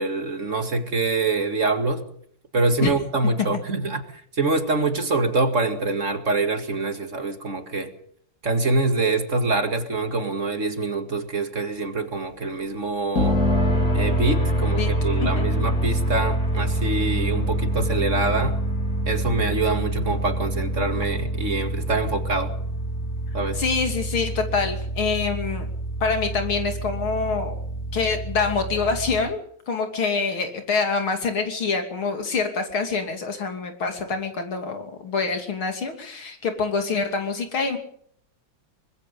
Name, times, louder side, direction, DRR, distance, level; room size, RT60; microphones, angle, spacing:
voice 1, 0.0-2.1 2.5-7.9 8.4-13.4 13.9-18.6 19.1-22.5 23.3-23.6, right 3 dB, 40° right, 2.2 m, -25 dB
sound 1, 13.2-29.2, right 1 dB, 45° left, 4.4 m, -26 dB
voice 2, 14.5-14.9 15.2-15.5 23.6-25.7 26.0-27.6 27.9-29.4 29.7-37.8, left 4 dB, 90° left, 3.7 m, -26 dB
24.0 x 20.5 x 5.4 m
omnidirectional pair, 2.2 m